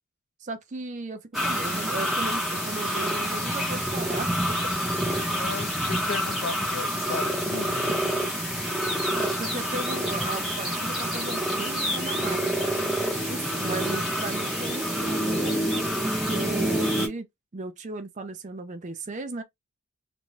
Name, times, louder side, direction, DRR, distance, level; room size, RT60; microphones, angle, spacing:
voice 1, 0.4-4.7 9.1-12.8 13.3-15.6 16.3-17.3 17.5-19.4, right 3 dB, 35° right, 0.4 m, -36 dB
sound 1, 1.3-17.1, equal, ahead, 0.8 m, -27 dB
voice 2, 5.3-8.0, left 5 dB, 45° left, 0.4 m, -35 dB
2.5 x 2.2 x 3.1 m
head